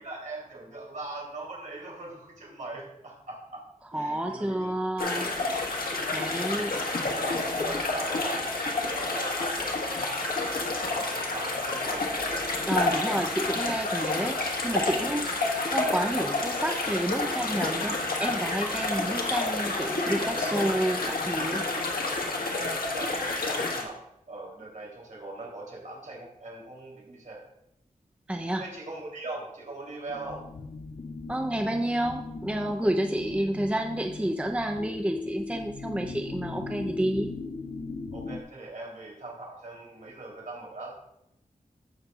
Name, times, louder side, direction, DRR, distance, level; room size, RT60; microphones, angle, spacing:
voice 1, 0.0-3.6 3.9-4.7 6.0-6.6 7.1-8.4 8.7-12.1 18.8-19.0 22.7-24.0 24.3-27.4 28.6-30.4 33.4-33.5 38.1-40.9, right 2 dB, 60° right, -3 dB, 3.2 m, -41 dB
voice 2, 3.9-5.3 6.1-6.8 12.7-21.6 28.3-28.6 31.3-37.3, right 1 dB, 10° right, 4 dB, 0.6 m, -30 dB
sound 1, 5.0-23.8, left 2 dB, 90° left, 1.5 m, -29 dB
sound 2, 30.1-38.4, left 3 dB, 45° left, 0.7 m, -39 dB
16.0 x 6.5 x 2.4 m, 0.81 s
wide cardioid pair, 80°, 15 cm